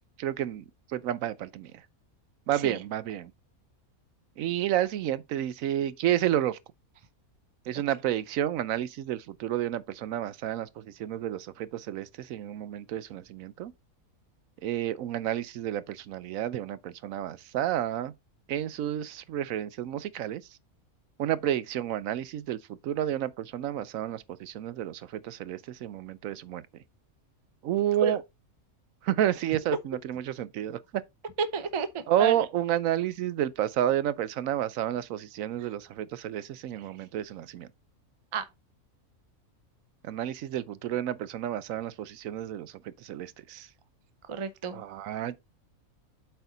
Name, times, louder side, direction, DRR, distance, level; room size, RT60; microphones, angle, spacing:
voice 1, 0.2-0.6 0.9-1.7 2.5-3.3 4.4-6.6 7.7-13.7 14.6-18.1 18.5-20.4 21.2-22.6 22.8-26.6 27.6-28.2 29.0-31.0 32.1-37.7 40.0-43.7 44.7-45.4, right 11 dB, 70° right, 0.9 m, -30 dB
voice 2, 31.4-32.4 35.6-35.7 36.7-37.0 38.3-38.5 44.3-44.8, right 5 dB, 40° right, 0.4 m, -32 dB
7.9 x 4.4 x 3.9 m
omnidirectional pair, 1.5 m